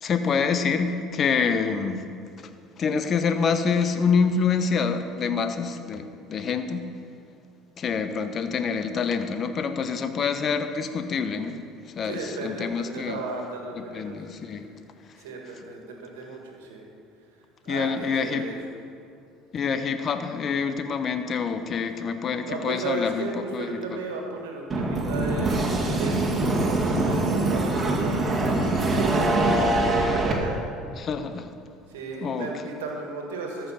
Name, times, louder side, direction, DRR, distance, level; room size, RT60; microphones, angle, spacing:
voice 1, 0.0-2.1 2.4-2.5 2.8-6.9 7.8-11.6 12.0-13.2 13.9-14.7 17.7-18.5 19.5-24.0 31.0-31.5 32.2-32.5, left 5 dB, 45° left, 9 dB, 0.8 m, -26 dB
voice 2, 12.0-14.6 15.2-16.8 17.6-18.6 22.4-28.2 28.6-30.6 31.9-33.7, right 3 dB, 90° right, 1 dB, 1.6 m, -35 dB
sound 1, 24.7-30.3, right 2 dB, 30° right, 2.1 m, -23 dB
13.5 x 5.7 x 5.7 m, 2.4 s
hypercardioid pair, 75°, 0 cm